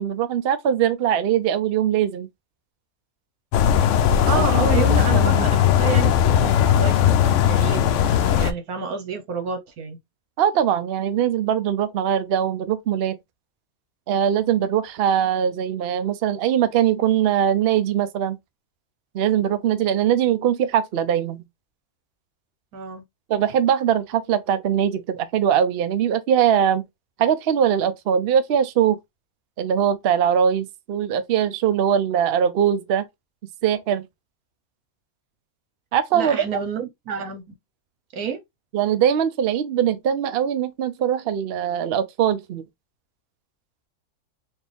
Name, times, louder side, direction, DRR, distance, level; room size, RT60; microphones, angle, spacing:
voice 1, 0.0-2.3 4.3-5.5 10.4-13.2 14.1-18.4 19.1-21.4 23.3-26.8 27.2-29.0 29.6-33.0 33.6-34.1 35.9-36.6 38.7-42.6, right 9 dB, 60° right, 0.7 m, -21 dB
sound 1, 3.5-8.5, left 9 dB, 65° left, 0.8 m, -18 dB
voice 2, 4.3-10.0 22.7-23.0 36.1-37.4 38.1-38.4, right 6 dB, 85° right, 1.5 m, -29 dB
4.4 x 2.6 x 3.4 m
omnidirectional pair, 1.5 m